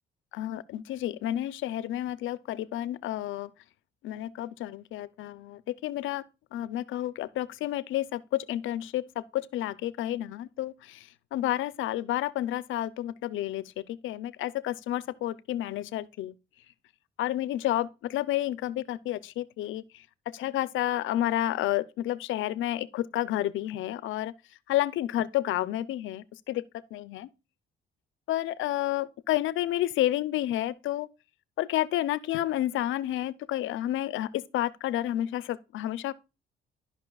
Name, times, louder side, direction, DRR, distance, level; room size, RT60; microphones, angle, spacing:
voice 1, 0.3-3.5 4.0-6.2 6.5-16.3 17.2-24.3 24.7-26.6 26.9-27.3 28.3-31.1 31.6-36.1, left 13 dB, 80° left, 0.5 m, -30 dB
13.0 x 5.5 x 2.3 m
cardioid pair, 90°, 20 cm